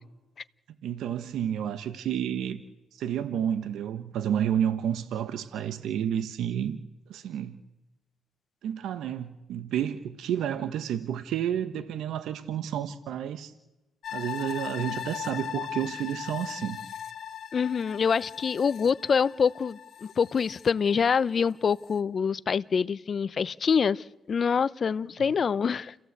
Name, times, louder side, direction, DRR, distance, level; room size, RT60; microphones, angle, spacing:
voice 1, 0.8-2.6 3.0-6.8 7.1-7.6 8.6-13.5 14.1-16.8, right 9 dB, 80° right, 1.3 m, -30 dB
sound 1, 14.0-21.3 21.7-21.8, left 9 dB, 60° left, 1.6 m, -39 dB
voice 2, 17.5-26.1, left 6 dB, 45° left, 0.8 m, -26 dB
29.5 x 16.0 x 8.2 m
cardioid pair, 90°, 0 cm